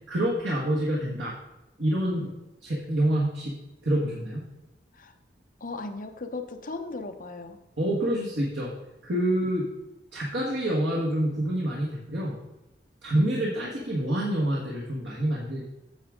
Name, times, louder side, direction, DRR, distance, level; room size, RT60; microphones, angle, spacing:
voice 1, 0.1-1.3 1.8-2.3 2.6-3.5 3.8-4.4 7.8-8.7 9.0-9.7 10.1-12.3 13.0-15.6, right 1 dB, 85° right, -4 dB, 1.6 m, -27 dB
voice 2, 5.6-7.6, left 3 dB, 50° left, 5 dB, 0.9 m, -37 dB
8.6 x 7.4 x 3.8 m, 0.99 s
head